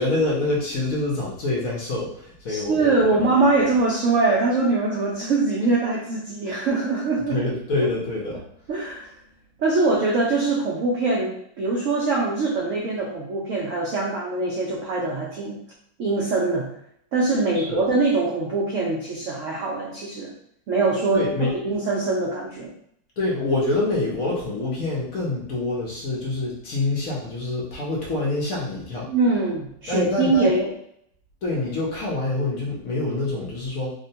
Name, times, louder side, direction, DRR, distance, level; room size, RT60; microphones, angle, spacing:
voice 1, 0.0-3.4 7.3-8.4 17.5-17.8 21.1-21.5 23.2-29.1 29.9-30.5 31.4-33.9, left 2 dB, 60° left, -4 dB, 1.0 m, -26 dB
voice 2, 2.5-7.4 8.7-9.1 9.6-15.6 16.0-16.7 17.1-20.3 20.7-22.7 29.1-30.7, right 3 dB, 80° right, -3 dB, 0.7 m, -23 dB
3.6 x 2.1 x 2.7 m, 0.70 s
omnidirectional pair, 2.0 m